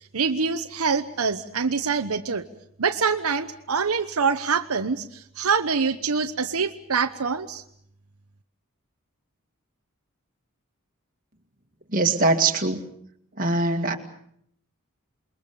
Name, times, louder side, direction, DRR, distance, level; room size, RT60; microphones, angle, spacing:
voice 1, 0.1-2.4 2.8-7.6, right 5 dB, 80° right, 7 dB, 1.0 m, -25 dB
voice 2, 11.9-12.8 13.4-14.0, right 3 dB, 40° right, 4 dB, 2.2 m, -22 dB
28.0 x 21.5 x 7.0 m, 0.68 s
head